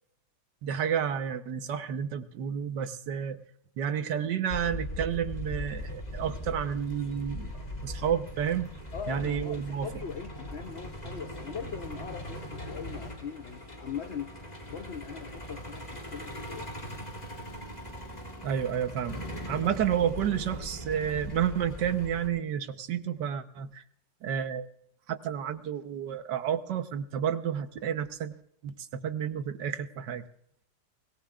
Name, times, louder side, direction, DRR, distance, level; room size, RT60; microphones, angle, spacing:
voice 1, 0.6-3.4 3.8-8.7 9.1-9.9 18.4-23.8 24.2-24.7 25.1-28.3 28.6-30.3, right 8 dB, 70° right, 10 dB, 1.5 m, -31 dB
Truck, 4.5-22.3, left 1 dB, 20° left, 2.8 m, -40 dB
voice 2, 8.9-17.1, left 7 dB, 70° left, 9 dB, 0.6 m, -41 dB
24.0 x 17.5 x 2.4 m, 0.69 s
omnidirectional pair, 2.0 m